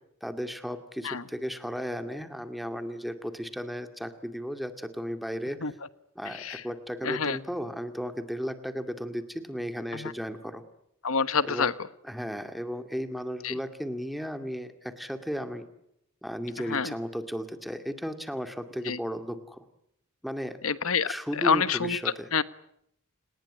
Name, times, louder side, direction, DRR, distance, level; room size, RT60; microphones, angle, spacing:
voice 1, 0.2-5.6 6.2-10.6 11.4-11.7 12.0-15.7 16.2-19.6 20.2-20.6 21.1-22.3, equal, ahead, 7 dB, 2.2 m, -35 dB
voice 2, 6.2-6.6 7.0-7.4 9.9-10.1 11.0-11.7 13.4-13.6 16.7-16.9 18.8-19.0 20.6-22.0 22.3-22.4, left 5 dB, 85° left, 14 dB, 1.2 m, -27 dB
29.0 x 20.0 x 8.9 m, 0.76 s
head